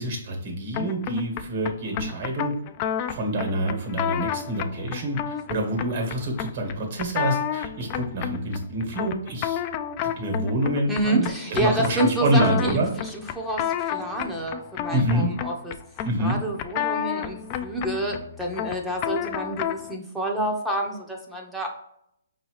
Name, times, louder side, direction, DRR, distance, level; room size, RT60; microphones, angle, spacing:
voice 1, 0.0-2.5 3.1-9.6 10.0-12.9 14.9-15.3 16.0-16.4, right 1 dB, 50° right, 2 dB, 1.4 m, -26 dB
sound 1, 0.7-19.9, left 9 dB, 30° left, 0.3 m, -31 dB
voice 2, 10.9-15.7 16.2-21.7, right 1 dB, 5° right, -1 dB, 0.7 m, -28 dB
5.4 x 2.8 x 3.1 m, 0.75 s
hypercardioid pair, 145°, 0 cm